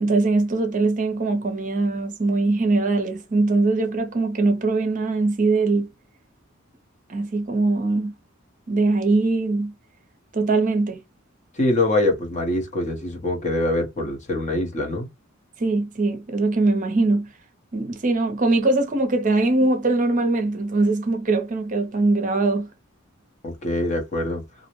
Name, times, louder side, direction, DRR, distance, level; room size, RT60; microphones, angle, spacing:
voice 1, 0.0-5.9 7.1-8.1 8.7-9.7 10.3-11.0 15.6-17.3 17.7-22.7, right 3 dB, 40° right, 0.6 m, -21 dB
voice 2, 11.6-15.1 23.4-24.4, left 1 dB, 35° left, 0.8 m, -24 dB
2.6 x 2.0 x 2.9 m
head